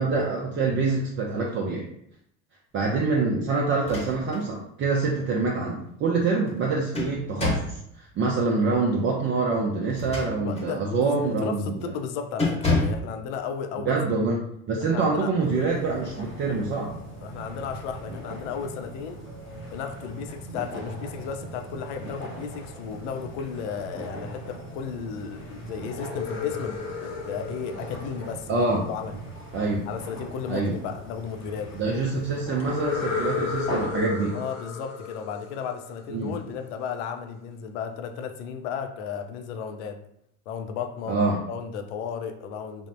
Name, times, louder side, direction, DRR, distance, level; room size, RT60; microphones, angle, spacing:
voice 1, 0.0-1.9 2.7-7.8 8.2-11.8 13.9-14.4 14.7-16.9 28.5-28.9 29.5-29.8 30.5-30.8 31.8-34.4 36.1-36.3 41.1-41.4, right 3 dB, 30° right, -2 dB, 0.5 m, -25 dB
sound 1, 3.7-4.5 4.9-5.0 6.5-7.8 9.8-10.8 11.2-11.5 11.8-12.0 12.4-13.1, left 2 dB, 15° left, 0.9 m, -28 dB
voice 2, 10.4-14.0 14.9-15.3 17.2-19.2 19.7-29.2 29.9-31.7 34.3-40.0 40.5-41.2 41.5-42.9, left 6 dB, 65° left, 6 dB, 0.5 m, -34 dB
sound 2, 15.4-33.9, right 1 dB, 90° left, 0.8 m, -40 dB
sound 3, 26.0-28.9 32.6-36.3, left 5 dB, 40° left, 0.8 m, -33 dB
3.3 x 2.0 x 2.5 m, 0.74 s
hypercardioid pair, 70°, 38 cm